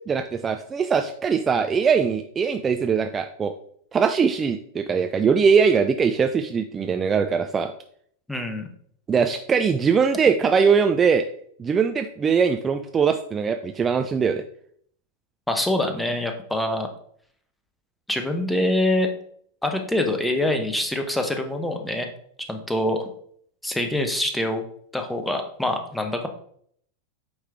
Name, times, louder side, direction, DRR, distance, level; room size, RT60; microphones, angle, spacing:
voice 1, 0.1-3.5 3.9-7.7 9.1-11.3 11.6-14.4, right 6 dB, 20° right, 6 dB, 0.4 m, -21 dB
voice 2, 8.3-8.7 15.5-16.9 18.1-19.1 19.6-22.1 22.5-23.1 23.6-24.6 24.9-26.3, left 1 dB, 5° left, 5 dB, 0.9 m, -25 dB
8.9 x 3.2 x 3.6 m, 0.63 s
figure-of-eight pair, 90°, 0 cm